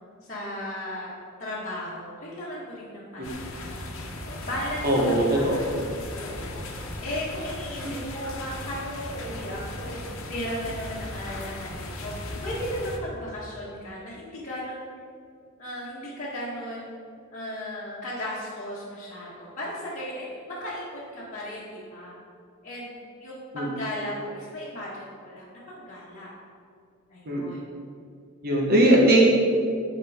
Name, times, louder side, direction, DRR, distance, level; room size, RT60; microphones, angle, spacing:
voice 1, 0.3-1.1 1.4-3.8 4.2-5.6 6.2-6.7 7.0-10.0 10.3-12.2 12.4-14.9 15.6-16.9 17.3-22.2 22.6-26.3 27.1-27.7, equal, 35° left, -10 dB, 1.6 m, -36 dB
sound 1, 3.2-13.0, left 1 dB, 70° left, 1.0 m, -37 dB
voice 2, 4.8-5.5 23.5-23.7 27.3-27.4 28.4-29.3, right 1 dB, 45° right, -3 dB, 1.2 m, -19 dB
11.5 x 5.1 x 3.6 m, 2.4 s
head